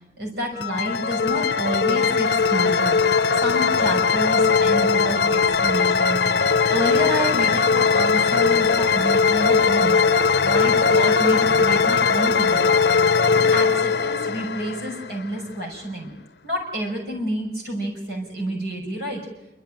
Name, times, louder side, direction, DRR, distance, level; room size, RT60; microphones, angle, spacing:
voice 1, 0.2-3.0 3.3-10.0 10.4-12.8 13.3-16.1 16.4-19.2, equal, 70° right, 1 dB, 5.9 m, -29 dB
sound 1, 0.6-15.4, left 5 dB, 65° left, 0.8 m, -19 dB
27.5 x 13.5 x 8.8 m, 0.95 s
head